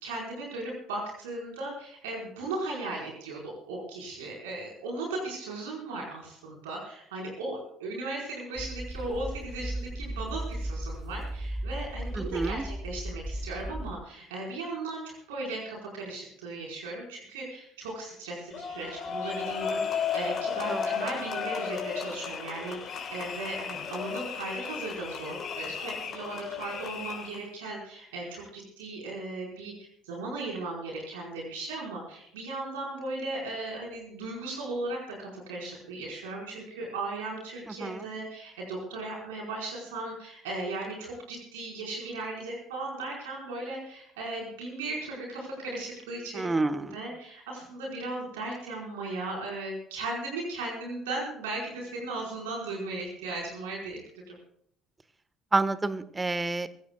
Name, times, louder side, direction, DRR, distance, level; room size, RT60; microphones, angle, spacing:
voice 1, 0.0-15.0 15.3-29.7 30.0-54.0 54.3-54.4, right 2 dB, 80° right, -2 dB, 4.7 m, -37 dB
sound 1, 8.6-14.0, right 1 dB, 5° left, 3.0 m, -36 dB
voice 2, 12.1-12.6 20.7-21.0 37.7-38.1 46.3-47.0 55.5-56.7, right 3 dB, 20° right, 14 dB, 1.3 m, -29 dB
sound 2, 18.5-27.5, left 6 dB, 50° left, 3.9 m, -34 dB
24.0 x 16.0 x 2.3 m, 0.68 s
hypercardioid pair, 55°, 0 cm